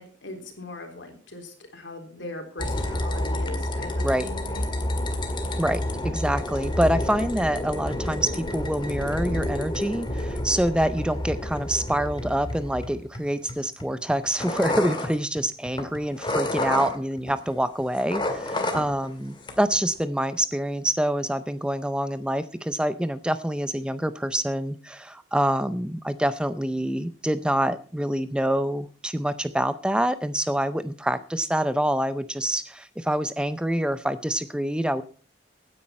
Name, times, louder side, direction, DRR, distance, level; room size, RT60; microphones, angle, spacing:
voice 1, 0.0-4.6, left 2 dB, 70° left, 5 dB, 3.5 m, -40 dB
sound 1, 2.6-17.5 17.8-19.1 19.4-19.9, left 1 dB, 25° left, 1.9 m, -29 dB
voice 2, 5.6-35.0, right 1 dB, 5° right, 12 dB, 0.5 m, -26 dB
16.5 x 9.8 x 4.2 m, 0.41 s
head